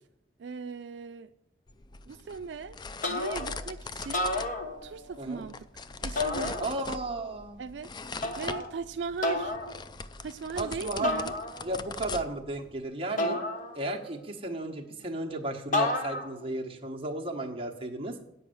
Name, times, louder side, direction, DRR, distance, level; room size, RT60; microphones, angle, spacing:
voice 1, 0.4-1.3 2.1-2.8 3.1-4.3 4.8-5.7 6.0-6.6 7.6-9.5 10.2-11.3, right 5 dB, 85° right, 0.4 m, -38 dB
sound 1, 1.7-12.9, left 4 dB, 25° left, 0.4 m, -41 dB
sound 2, 3.0-3.7 4.0-5.2 6.2-7.1 8.2-8.7 9.2-9.7 11.0-11.9 13.2-14.2 15.7-16.5, left 2 dB, 50° left, 1.3 m, -31 dB
voice 2, 5.2-5.5 6.6-7.6 10.5-11.1 11.6-13.4 13.7-18.2, right 2 dB, 30° right, 1.3 m, -34 dB
9.2 x 5.4 x 7.8 m
head